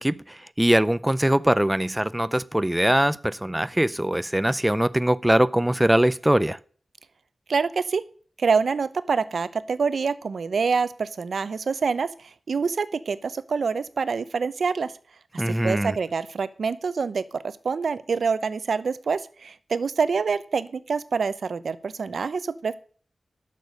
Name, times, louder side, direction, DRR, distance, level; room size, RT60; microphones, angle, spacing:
voice 1, 0.0-6.6 15.4-16.0, right 1 dB, 10° right, 0.4 m, -22 dB
voice 2, 7.5-8.0 8.4-14.9 15.5-17.2 17.6-22.8, right 5 dB, 80° right, 0.8 m, -26 dB
12.0 x 6.8 x 6.5 m
wide cardioid pair, 105°, 0 cm